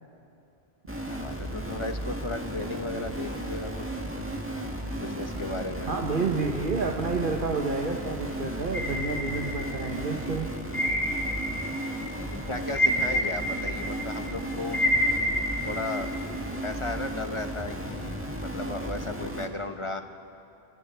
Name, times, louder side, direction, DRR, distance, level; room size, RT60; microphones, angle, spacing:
sound 1, 0.9-19.5, right 1 dB, 10° right, 1.9 m, -34 dB
voice 1, 1.1-3.7 5.0-5.9 12.5-14.8 15.6-16.1 16.6-20.0, left 2 dB, 30° left, 6 dB, 1.1 m, -35 dB
voice 2, 5.9-10.5, right 4 dB, 60° right, 2 dB, 1.3 m, -29 dB
sound 2, 8.7-10.0 10.7-12.0 12.3-16.1, left 1 dB, 85° left, 2.8 m, -28 dB
29.0 x 24.0 x 4.6 m, 2.6 s
omnidirectional pair, 1.0 m